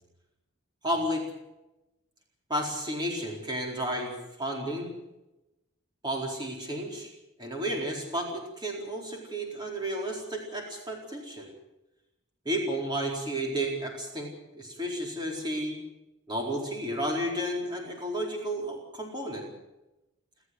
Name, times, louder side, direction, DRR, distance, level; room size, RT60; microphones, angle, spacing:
voice 1, 0.8-1.2 2.5-4.9 6.0-7.1 7.4-11.5 12.4-15.8 16.3-19.5, right 1 dB, 20° right, 0 dB, 4.3 m, -32 dB
29.5 x 13.0 x 7.8 m, 0.97 s
head